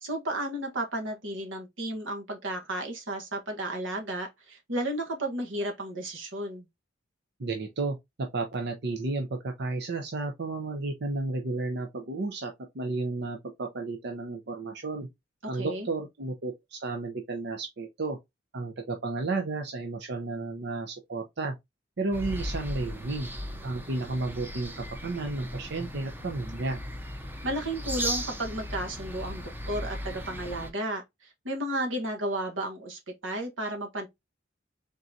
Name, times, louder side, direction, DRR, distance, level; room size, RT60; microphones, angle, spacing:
voice 1, 0.0-6.6 15.5-15.9 27.4-34.1, right 1 dB, 85° right, 1.3 m, -33 dB
voice 2, 7.4-15.1 15.5-18.2 18.5-21.5 22.0-23.3 23.6-26.8, right 3 dB, 60° right, 0.7 m, -32 dB
sound 1, 22.1-30.7, equal, 10° right, 0.7 m, -37 dB
4.0 x 3.7 x 2.7 m
head